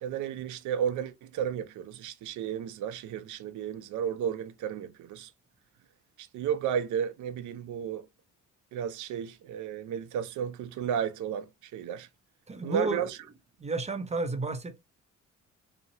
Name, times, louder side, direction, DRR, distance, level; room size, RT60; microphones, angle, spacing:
voice 1, 0.0-5.3 6.2-8.1 8.7-12.1 12.6-13.2, right 8 dB, 75° right, 0.5 m, -33 dB
voice 2, 12.5-13.1 13.6-14.8, right 3 dB, 20° right, 0.6 m, -32 dB
2.8 x 2.1 x 2.5 m
cardioid pair, 90°, 30 cm